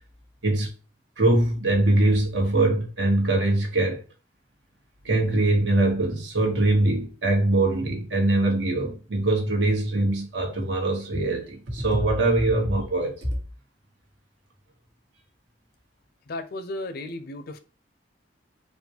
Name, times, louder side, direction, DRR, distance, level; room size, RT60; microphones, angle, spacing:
voice 1, 1.2-4.0 5.0-13.3, right 2 dB, 75° right, 1.1 m, -22 dB
voice 2, 16.3-17.6, left 2 dB, 55° left, 0.5 m, -34 dB
4.1 x 2.2 x 2.9 m
head